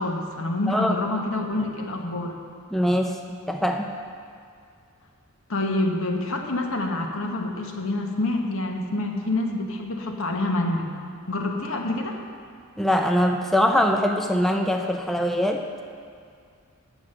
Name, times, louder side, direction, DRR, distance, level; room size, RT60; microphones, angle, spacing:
voice 1, 0.0-2.4 5.5-10.9 11.3-12.2, left 2 dB, 70° left, 2 dB, 1.1 m, -27 dB
voice 2, 2.7-3.2 3.5-3.9 12.8-15.6, equal, ahead, 2 dB, 0.4 m, -22 dB
8.7 x 7.2 x 6.5 m, 2.3 s
head